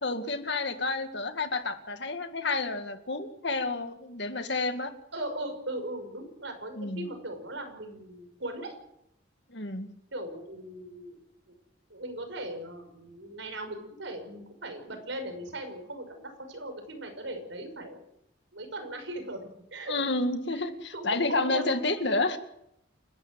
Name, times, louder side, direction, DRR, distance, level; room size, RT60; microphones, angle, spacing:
voice 1, 0.0-4.9 6.8-7.1 9.5-9.9 19.9-22.4, left 3 dB, 60° left, 8 dB, 2.0 m, -30 dB
voice 2, 5.1-8.7 10.1-11.2 11.5-11.6 11.9-18.0 18.5-20.1 20.5-20.6 20.9-21.7 21.9-22.1, right 1 dB, 70° right, 5 dB, 6.0 m, -39 dB
29.0 x 13.0 x 7.7 m, 0.79 s
head